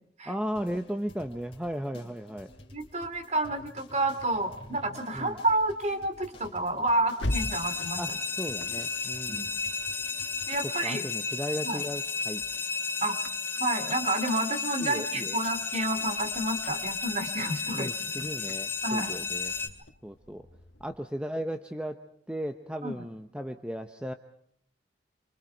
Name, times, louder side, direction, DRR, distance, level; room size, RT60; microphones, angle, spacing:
voice 1, 0.3-2.5 5.1-5.4 8.0-8.1 8.4-9.5 10.8-12.4 14.8-15.4 17.7-19.5 20.0-20.5 20.8-22.0 22.3-24.1, equal, 5° right, 6 dB, 0.9 m, -35 dB
sound 1, 0.6-10.6, left 1 dB, 30° left, 3.3 m, -52 dB
voice 2, 2.7-8.0 9.3-9.5 10.5-11.0 11.6-11.8 13.0-13.2 13.6-17.9 18.2-18.3 18.8-19.1 22.8-23.0, right 2 dB, 35° right, 7 dB, 2.9 m, -30 dB
sound 2, 4.3-10.9 11.3-21.1, left 1 dB, 80° left, 1.4 m, -43 dB
School Bell - Fire Bell, 7.3-19.7, left 4 dB, 10° left, 2.6 m, -33 dB
29.0 x 24.5 x 4.6 m, 0.69 s
head